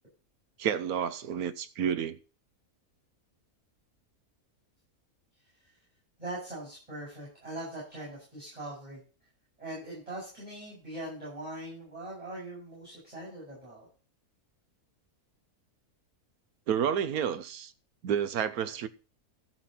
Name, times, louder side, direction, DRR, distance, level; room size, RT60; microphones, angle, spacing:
voice 1, 0.6-2.2 16.7-17.7 18.0-18.9, right 8 dB, 80° right, 1.3 m, -30 dB
voice 2, 6.2-9.0 9.6-13.9, right 1 dB, 25° right, 8.1 m, -41 dB
13.0 x 6.0 x 5.7 m
omnidirectional pair, 1.6 m